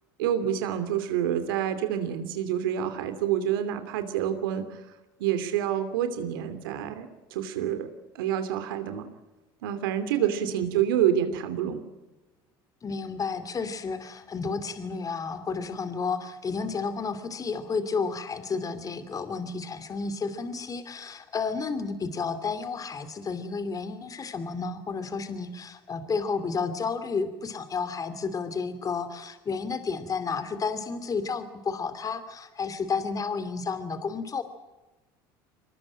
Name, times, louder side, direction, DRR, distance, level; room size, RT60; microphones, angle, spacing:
voice 1, 0.2-4.8 5.2-7.9 8.1-9.1 9.6-11.8, right 10 dB, 85° right, 9 dB, 2.8 m, -27 dB
voice 2, 12.8-34.4, left 5 dB, 30° left, 11 dB, 2.7 m, -31 dB
23.5 x 19.5 x 8.8 m, 1.1 s
supercardioid pair, 90°, 11 cm